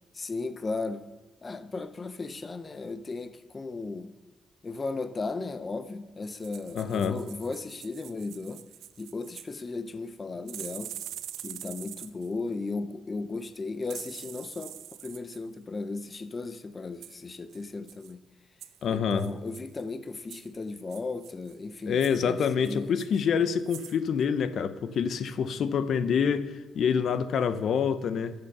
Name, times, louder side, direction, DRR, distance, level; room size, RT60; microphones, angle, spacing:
voice 1, 0.1-1.0 1.4-4.1 4.6-8.6 9.0-10.9 11.4-18.2 18.9-22.9, left 3 dB, 35° left, 11 dB, 0.7 m, -36 dB
sound 1, 6.2-9.6 10.5-12.3 13.9-15.4 17.0-17.2 17.5-17.6 17.9-18.1 18.6-18.8 19.2-19.8 20.3-20.5 20.9-21.6 21.9-22.2 22.6-23.3 23.6-24.0 24.2-24.3, right 11 dB, 85° right, 0.5 m, -44 dB
voice 2, 6.7-7.2 18.8-19.3 21.9-28.3, left 7 dB, 65° left, 12 dB, 0.7 m, -26 dB
11.5 x 6.8 x 6.7 m, 1.3 s
cardioid pair, 80°, 0 cm